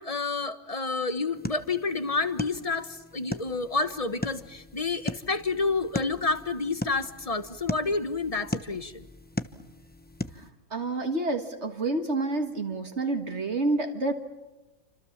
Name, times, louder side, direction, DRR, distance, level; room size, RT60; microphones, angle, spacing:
voice 1, 0.0-9.1, left 3 dB, 30° left, 11 dB, 1.3 m, -29 dB
sound 1, 1.3-10.5, left 1 dB, 10° left, 0.8 m, -38 dB
voice 2, 10.3-14.1, right 2 dB, 55° right, 5 dB, 2.0 m, -29 dB
29.0 x 26.0 x 7.3 m, 1.1 s
omnidirectional pair, 1.4 m